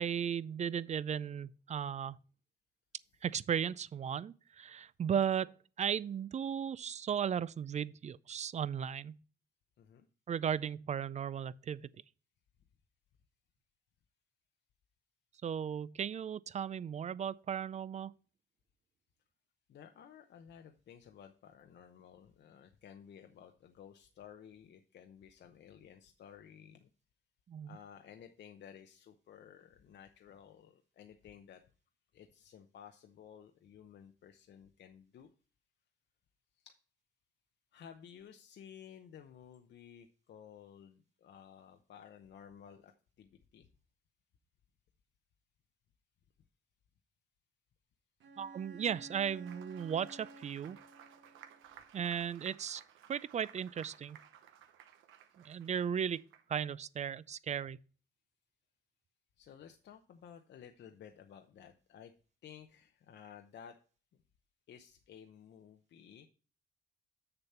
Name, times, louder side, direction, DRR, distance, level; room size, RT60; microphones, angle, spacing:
voice 1, 0.0-2.2 3.2-9.2 10.3-11.9 15.4-18.1 27.5-27.8 48.4-50.8 51.9-52.8 53.1-54.2 55.4-56.2 56.5-57.8, right 8 dB, 35° right, 0.4 m, -36 dB
voice 2, 19.7-26.9 27.7-31.6 32.1-35.3 36.6-36.7 37.7-42.9 43.2-43.7 59.4-62.1 62.4-63.8 64.7-66.3, left 8 dB, 60° left, 0.7 m, -55 dB
Bowed string instrument, 48.2-51.7, right 3 dB, 70° right, 1.2 m, -54 dB
Applause, 48.9-56.7, right 9 dB, 85° right, 0.9 m, -58 dB
7.0 x 6.8 x 4.3 m
cardioid pair, 90°, 20 cm